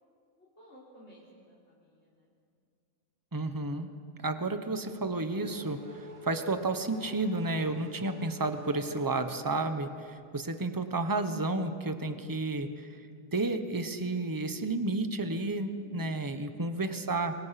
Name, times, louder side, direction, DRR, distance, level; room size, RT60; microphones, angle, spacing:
voice 1, 0.4-2.3 15.7-16.2, left 1 dB, 55° left, -7 dB, 4.2 m, -55 dB
voice 2, 3.3-3.9 4.2-12.9 13.3-17.3, right 2 dB, 15° right, 8 dB, 1.1 m, -31 dB
Race car auto racing / Accelerating revving vroom, 4.7-9.9, right 2 dB, 35° right, 6.3 m, -48 dB
29.5 x 25.0 x 6.0 m, 2.3 s
omnidirectional pair, 1.4 m